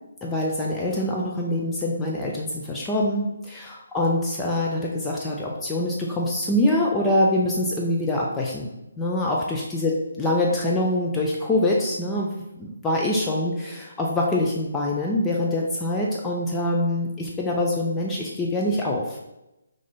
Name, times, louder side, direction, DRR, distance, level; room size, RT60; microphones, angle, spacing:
voice 1, 0.2-8.7 9.0-9.9 10.2-12.3 12.5-19.2, left 1 dB, 10° left, -3 dB, 0.3 m, -24 dB
3.6 x 2.6 x 3.2 m, 0.94 s
figure-of-eight pair, 145°, 0 cm